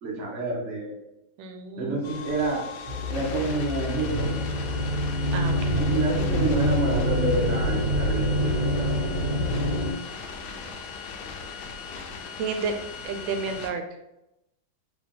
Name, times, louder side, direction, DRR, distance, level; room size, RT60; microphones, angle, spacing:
voice 1, 0.0-1.0 1.8-2.6 3.1-4.3 5.7-8.9, right 2 dB, 45° right, -2 dB, 1.1 m, -28 dB
voice 2, 1.4-1.9 5.3-5.7 12.4-12.7 13.0-13.8, right 5 dB, 85° right, 6 dB, 1.4 m, -31 dB
sound 1, 2.0-13.7, left 5 dB, 90° left, 1.4 m, -39 dB
sound 2, 2.9-9.9, equal, 70° right, 1.3 m, -26 dB
3.4 x 3.4 x 3.7 m, 0.89 s
omnidirectional pair, 2.1 m